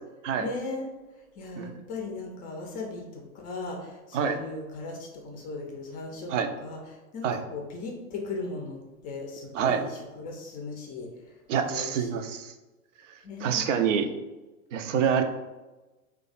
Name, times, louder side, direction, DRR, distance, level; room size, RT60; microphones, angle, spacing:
voice 1, 0.4-0.9 1.4-6.3 6.6-6.8 7.1-11.1 11.7-12.1 13.2-13.7, left 3 dB, 20° left, 1 dB, 0.5 m, -37 dB
voice 2, 11.5-12.5 13.4-14.1 14.7-15.2, right 7 dB, 60° right, 8 dB, 0.5 m, -26 dB
3.2 x 2.3 x 3.8 m, 1.1 s
figure-of-eight pair, 90°, 43 cm